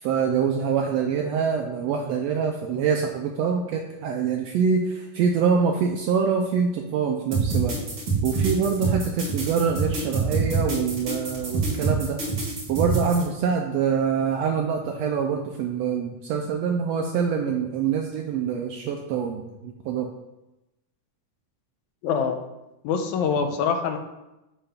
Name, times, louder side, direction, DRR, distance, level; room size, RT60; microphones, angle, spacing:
voice 1, 0.0-7.8 8.2-12.2 12.7-20.1, right 6 dB, 80° right, 2 dB, 1.5 m, -25 dB
sound 1, 7.3-13.2, right 4 dB, 50° right, 2.5 m, -26 dB
voice 2, 22.0-22.4 22.8-24.0, left 6 dB, 85° left, 6 dB, 2.1 m, -24 dB
7.8 x 3.4 x 5.5 m, 0.97 s
omnidirectional pair, 3.4 m